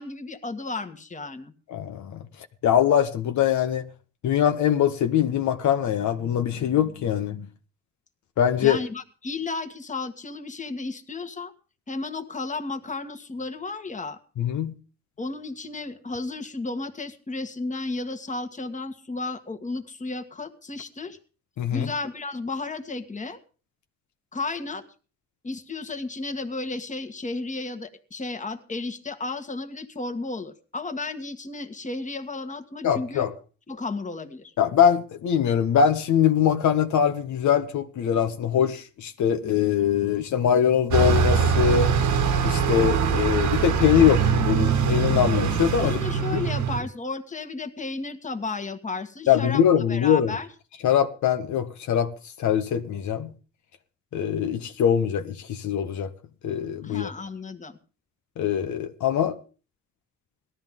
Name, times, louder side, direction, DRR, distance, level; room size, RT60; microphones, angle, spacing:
voice 1, 0.0-1.5 8.6-11.5 11.9-14.2 15.2-21.2 21.7-23.4 24.3-24.8 25.4-33.3 33.7-34.5 45.8-49.6 49.9-50.5 56.8-57.8, left 3 dB, 25° left, 1.7 m, -33 dB
voice 2, 1.7-2.2 2.6-3.9 4.2-7.5 8.4-8.8 14.4-14.7 21.6-21.9 32.8-33.3 34.6-41.9 42.4-46.0 46.3-46.4 49.3-50.3 50.8-52.1 52.4-53.3 54.1-56.1 56.4-57.1 58.4-59.4, left 9 dB, 70° left, 1.3 m, -22 dB
Bus, 40.9-46.8, right 6 dB, 70° right, 1.7 m, -22 dB
18.5 x 13.0 x 3.7 m
cardioid pair, 90°, 30 cm